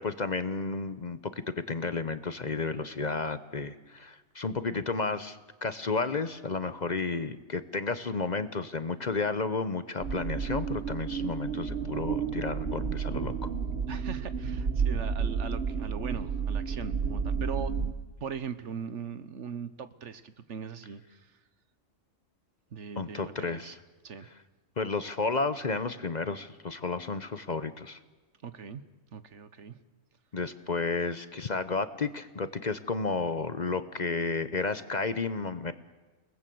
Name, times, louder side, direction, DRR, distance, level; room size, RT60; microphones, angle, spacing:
voice 1, 0.0-13.5 23.0-23.8 24.8-28.0 30.3-35.7, left 4 dB, 40° left, 12 dB, 0.9 m, -32 dB
sound 1, 10.0-17.9, right 6 dB, 55° right, 1.4 m, -31 dB
voice 2, 13.9-17.9 18.2-21.3 22.7-23.7 24.0-24.3 28.4-28.8 29.1-29.8, right 6 dB, 70° right, 13 dB, 1.4 m, -40 dB
29.5 x 19.5 x 7.8 m, 1.2 s
omnidirectional pair, 1.3 m